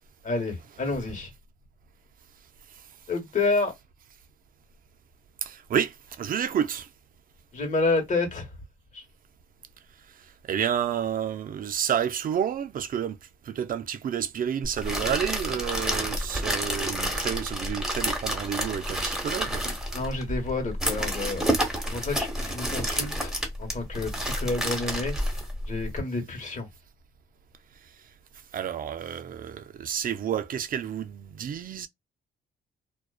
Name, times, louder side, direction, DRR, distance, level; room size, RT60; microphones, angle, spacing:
voice 1, 0.2-1.3 3.1-3.7 7.5-8.5 8.9-9.0 19.9-23.3 23.6-26.7, left 3 dB, 40° left, 1.2 m, -29 dB
voice 2, 5.4-6.9 10.1-13.2 13.4-19.7 28.5-31.9, right 9 dB, 45° right, 0.4 m, -30 dB
sound 1, 14.6-26.0, equal, 5° right, 1.0 m, -30 dB
2.3 x 2.3 x 2.3 m
cardioid pair, 90°, 20 cm